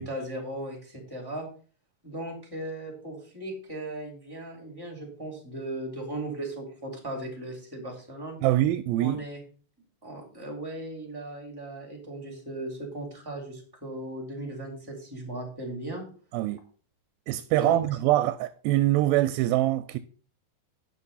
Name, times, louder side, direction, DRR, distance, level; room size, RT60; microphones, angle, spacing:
voice 1, 0.0-1.5 2.0-8.4 9.0-9.4 10.0-16.0 17.5-17.8, right 1 dB, 5° right, 2.8 m, -37 dB
voice 2, 8.4-9.2 16.3-16.6 17.3-20.0, right 15 dB, 85° right, 2.4 m, -24 dB
9.3 x 5.9 x 5.5 m
omnidirectional pair, 4.3 m